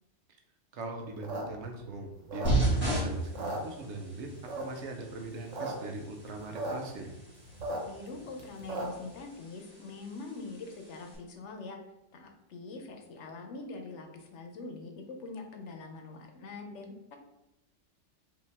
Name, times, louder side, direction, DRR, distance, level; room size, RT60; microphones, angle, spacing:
voice 1, 0.7-7.2, right 2 dB, 70° right, 3 dB, 1.0 m, -41 dB
sound 1, 1.1-2.9 3.2-4.1 4.5-4.9 5.3-5.7 6.0-6.1 6.2-6.7 7.1-9.1, right 2 dB, 90° right, 1.3 m, -37 dB
sound 2, 2.4-11.1, right 2 dB, 10° right, 1.5 m, -36 dB
voice 2, 7.8-11.8 12.1-17.2, left 3 dB, 75° left, 4 dB, 1.0 m, -43 dB
5.0 x 2.6 x 3.4 m, 0.90 s
omnidirectional pair, 1.2 m